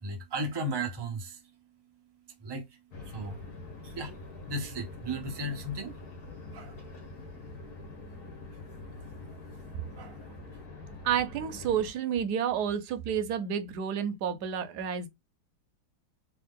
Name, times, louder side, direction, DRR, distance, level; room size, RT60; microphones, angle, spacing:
voice 1, 0.0-1.4 2.4-2.7 3.1-3.4 3.8-4.1 4.5-5.9 6.5-6.8 9.9-10.2, right 1 dB, 35° right, 0.4 m, -35 dB
sound 1, 2.9-11.9, left 3 dB, 55° left, 1.6 m, -45 dB
voice 2, 11.0-15.1, right 8 dB, 65° right, 1.2 m, -30 dB
3.5 x 3.2 x 3.6 m
omnidirectional pair, 2.1 m